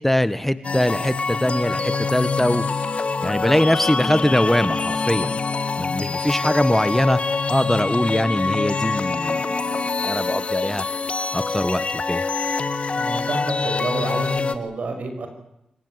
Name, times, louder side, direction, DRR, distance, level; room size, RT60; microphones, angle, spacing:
voice 1, 0.0-2.6 3.2-5.4 5.8-7.2 7.5-9.4 10.0-10.8 11.3-12.2, left 1 dB, 10° left, 14 dB, 1.2 m, -22 dB
sound 1, 0.6-14.6, left 4 dB, 50° left, 1.8 m, -25 dB
voice 2, 12.9-15.3, right 3 dB, 70° right, 6 dB, 5.7 m, -29 dB
25.5 x 16.0 x 9.5 m, 0.85 s
cardioid pair, 55°, 3 cm